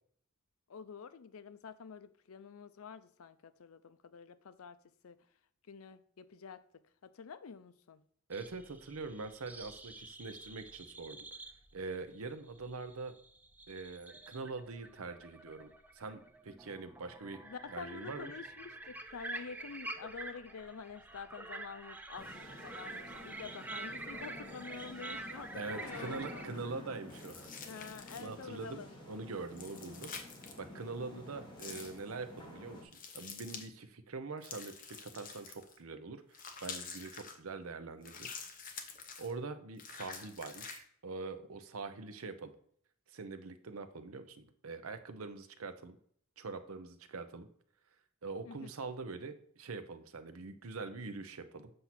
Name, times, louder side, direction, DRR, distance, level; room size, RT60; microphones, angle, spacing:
voice 1, 0.7-4.8 5.0-5.2 5.7-8.0 17.4-26.6 27.6-28.9 30.8-31.2 48.4-48.7, left 5 dB, 85° left, 0.5 m, -48 dB
sound 1, 8.3-26.5, right 2 dB, 10° right, 0.4 m, -47 dB
voice 2, 8.3-11.2 11.7-13.2 13.7-15.7 15.9-17.4 17.7-18.3 25.5-27.5 28.2-30.1 30.6-38.4 39.2-42.5 43.1-46.0 46.4-47.5 48.2-51.7, right 4 dB, 85° right, 0.7 m, -44 dB
sound 2, 22.2-32.8, left 1 dB, 20° left, 1.5 m, -51 dB
sound 3, 27.1-28.4 29.5-30.6 31.6-32.0 32.9-33.7 34.4-35.8 36.3-37.4 38.0-39.3 39.8-40.8, left 5 dB, 40° left, 0.9 m, -47 dB
7.7 x 2.7 x 5.9 m
head